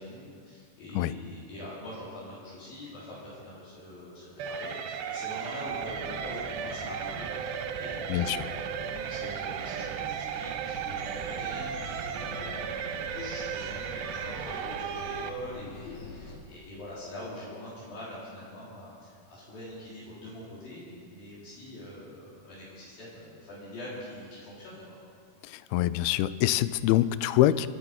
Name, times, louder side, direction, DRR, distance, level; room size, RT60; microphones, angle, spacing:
voice 1, 0.0-25.0, left 1 dB, 70° left, -8 dB, 5.2 m, -44 dB
sound 1, 4.4-15.3, right 8 dB, 85° right, 2.6 m, -35 dB
sound 2, 5.7-12.6, right 2 dB, ahead, 3.9 m, -47 dB
voice 2, 8.1-8.4 25.5-27.7, left 14 dB, 90° left, 15 dB, 2.5 m, -25 dB
sound 3, 10.7-16.4, left 3 dB, 50° left, 2.9 m, -45 dB
25.5 x 9.1 x 5.7 m, 2.2 s
omnidirectional pair, 4.3 m